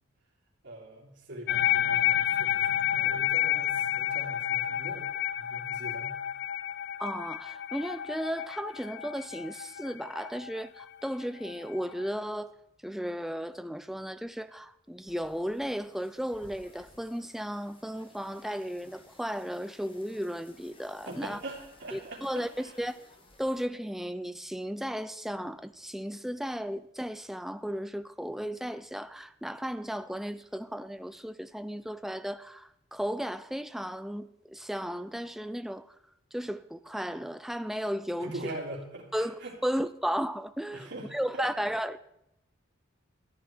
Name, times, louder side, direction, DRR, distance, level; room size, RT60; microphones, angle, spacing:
voice 1, 0.6-5.1 5.4-6.2 21.0-22.7 38.2-39.5 40.7-41.5, right 1 dB, 60° right, 3.3 m, -42 dB
sound 1, 1.5-12.1, left 11 dB, 55° left, 0.4 m, -30 dB
voice 2, 7.0-12.5 12.8-21.4 21.9-23.0 23.4-35.9 36.3-38.6 39.1-42.0, equal, ahead, 0.4 m, -35 dB
sound 2, 15.1-23.6, left 1 dB, 25° left, 1.5 m, -57 dB
14.0 x 10.0 x 4.4 m
head